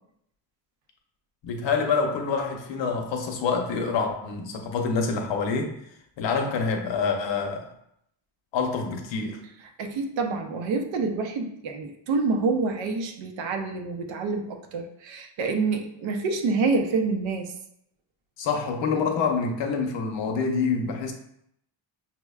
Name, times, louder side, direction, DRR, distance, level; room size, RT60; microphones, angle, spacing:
voice 1, 1.4-5.8 6.2-7.7 8.5-9.4 18.4-21.1, left 5 dB, 70° left, 3 dB, 0.7 m, -26 dB
voice 2, 9.8-17.5, right 4 dB, 80° right, 4 dB, 0.7 m, -27 dB
5.8 x 2.1 x 2.3 m, 0.73 s
cardioid pair, 125°, 46 cm